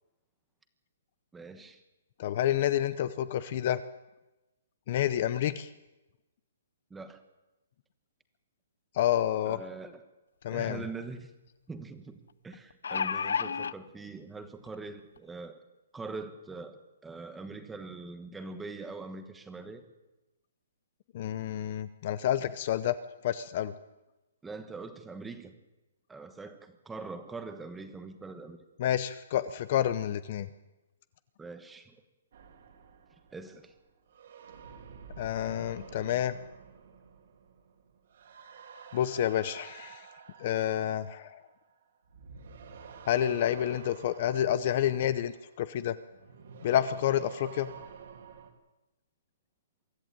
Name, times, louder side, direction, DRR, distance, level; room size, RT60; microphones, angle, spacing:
voice 1, 1.3-1.8 6.9-7.2 9.4-10.0 10.5-11.3 11.7-12.2 12.4-15.6 15.9-19.8 24.4-25.5 26.1-28.6 31.4-32.0 33.3-33.7, right 3 dB, 5° right, 9 dB, 1.1 m, -42 dB
voice 2, 2.2-3.8 4.9-5.7 8.9-9.6 10.4-10.8 21.1-23.0 23.2-23.7 28.8-30.5 35.2-36.4 38.9-40.1 40.4-41.4 43.1-46.0 46.6-47.7, left 11 dB, 30° left, 14 dB, 0.7 m, -29 dB
sound 1, 10.4-10.5 10.8-10.9 12.5-13.7 14.7-14.8 15.2-15.3, left 6 dB, 85° left, 0.7 m, -31 dB
sound 2, 32.3-41.7 42.0-48.5, right 6 dB, 45° right, 2.7 m, -50 dB
24.0 x 14.0 x 8.9 m, 1.0 s
hypercardioid pair, 180°, 0 cm